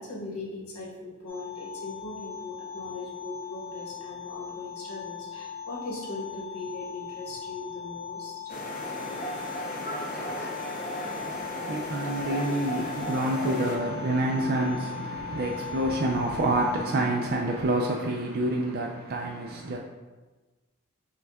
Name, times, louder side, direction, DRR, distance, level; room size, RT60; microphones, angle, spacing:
voice 1, 0.0-8.5 8.9-9.3, left 2 dB, 80° left, 1.1 m, -39 dB
sound 1, 1.3-17.1, left 8 dB, 70° right, 1.2 m, -39 dB
sound 2, 8.5-13.8, equal, 35° left, 0.6 m, -35 dB
sound 3, 10.1-10.8, right 1 dB, 5° right, 0.8 m, -43 dB
voice 2, 11.1-19.8, right 1 dB, 45° right, 0.3 m, -28 dB
6.0 x 2.3 x 3.5 m
head